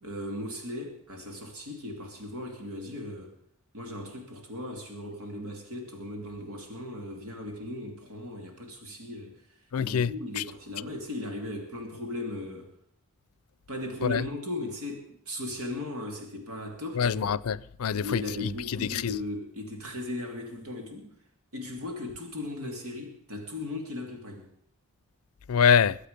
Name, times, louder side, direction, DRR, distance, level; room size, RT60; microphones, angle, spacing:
voice 1, 0.0-3.4 3.7-12.7 13.7-17.3 17.9-21.1 21.5-24.5, left 1 dB, 85° right, 2.7 m, -37 dB
voice 2, 9.7-10.1 10.4-10.5 14.0-14.2 17.0-18.5 18.8-19.1 25.5-26.0, left 7 dB, 80° left, 0.5 m, -25 dB
22.0 x 8.2 x 5.2 m
head